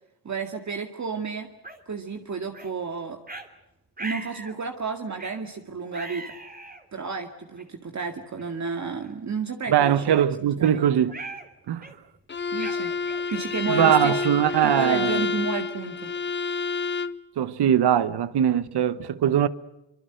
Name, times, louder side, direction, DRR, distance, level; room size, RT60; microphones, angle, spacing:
voice 1, 0.2-1.5 1.9-3.2 4.0-6.3 6.9-10.9 12.5-12.9 13.3-14.2 14.6-16.1, right 5 dB, 45° right, 2.1 m, -32 dB
sound 1, 1.6-1.8 2.5-2.7 3.3-3.5 4.0-4.6 5.2-5.4 5.9-6.8 7.6-7.7 8.4-8.6 9.0-9.1 9.7-10.8 11.1-11.5 11.8-12.1 12.6-15.2, right 2 dB, 20° right, 3.2 m, -40 dB
voice 2, 9.7-11.2 11.7-11.9 13.7-15.3 17.4-19.5, right 10 dB, 70° right, 1.3 m, -21 dB
Bowed string instrument, 12.3-17.2, left 5 dB, 25° left, 0.9 m, -28 dB
25.0 x 23.5 x 8.0 m
cardioid pair, 85°, 41 cm